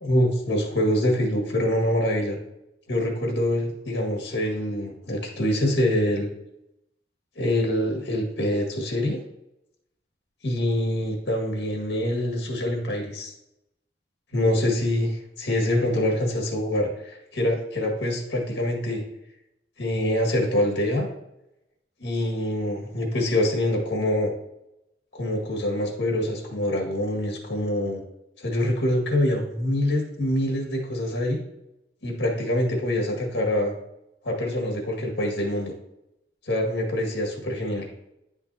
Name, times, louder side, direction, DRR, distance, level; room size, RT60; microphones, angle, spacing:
voice 1, 0.0-2.4 2.9-6.3 7.4-9.2 10.4-13.3 14.3-19.0 19.8-21.1 22.0-24.3 25.1-28.0 28.4-31.4 32.0-33.7 34.2-35.7 36.5-37.9, left 1 dB, 90° left, 0 dB, 1.8 m, -25 dB
10.0 x 5.9 x 2.8 m, 0.86 s
head